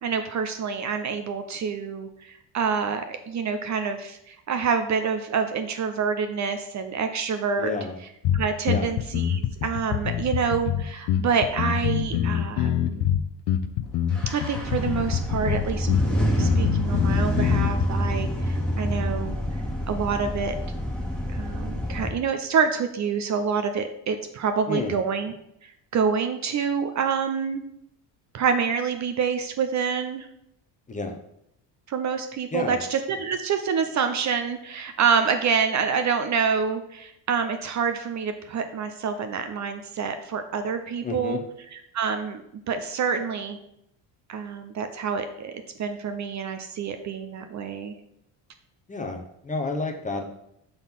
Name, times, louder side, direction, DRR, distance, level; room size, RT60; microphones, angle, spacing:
voice 1, 0.0-7.7 8.3-13.1 14.3-15.9 16.1-19.4 19.9-20.6 21.3-25.3 25.6-27.6 28.3-30.3 31.9-41.4 41.9-43.6 44.3-47.9, right 6 dB, 40° right, 8 dB, 0.6 m, -27 dB
voice 2, 7.6-8.0 8.7-8.9 24.7-24.9 30.9-31.2 32.5-32.8 41.0-41.4 48.9-50.2, left 3 dB, 15° left, 3 dB, 0.8 m, -30 dB
sound 1, 8.2-17.8, left 10 dB, 65° left, 0.6 m, -25 dB
sound 2, 14.1-22.1, equal, ahead, 1.4 m, -27 dB
5.4 x 4.0 x 5.8 m, 0.79 s
cardioid pair, 110°, 44 cm